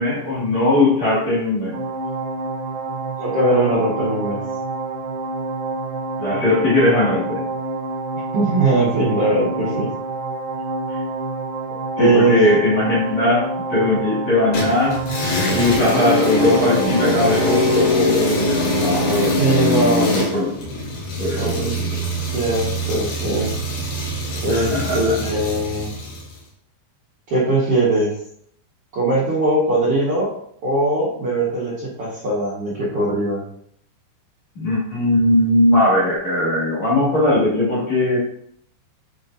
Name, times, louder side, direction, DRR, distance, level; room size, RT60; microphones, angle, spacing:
voice 1, 0.0-1.8 6.2-7.4 10.9-11.0 12.0-15.1 15.5-19.4 20.1-20.6 21.2-22.0 24.5-25.2 34.6-38.2, left 2 dB, 45° left, -8 dB, 3.1 m, -19 dB
sound 1, 1.7-17.9, right 3 dB, 85° right, 2.0 m, -28 dB
voice 2, 3.2-4.4 8.3-9.9 12.0-12.4 19.4-20.1 21.4-21.7 22.3-23.5 24.4-25.9 27.3-28.1 28.9-30.3 30.6-33.4, right 2 dB, 50° right, -9 dB, 1.9 m, -20 dB
sound 2, 14.5-26.3, left 1 dB, 85° left, 4.2 m, -23 dB
8.8 x 5.0 x 2.7 m, 0.67 s
omnidirectional pair, 5.0 m